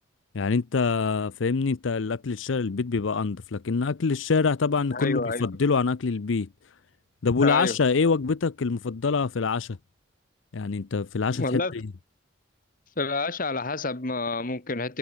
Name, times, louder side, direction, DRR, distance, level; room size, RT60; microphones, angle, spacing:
voice 1, 0.3-6.5 7.2-9.8 10.5-11.8, left 4 dB, 90° left, 0.6 m, -25 dB
voice 2, 4.9-5.5 7.4-7.8 11.3-11.7 13.0-15.0, left 3 dB, 45° left, 1.8 m, -28 dB
head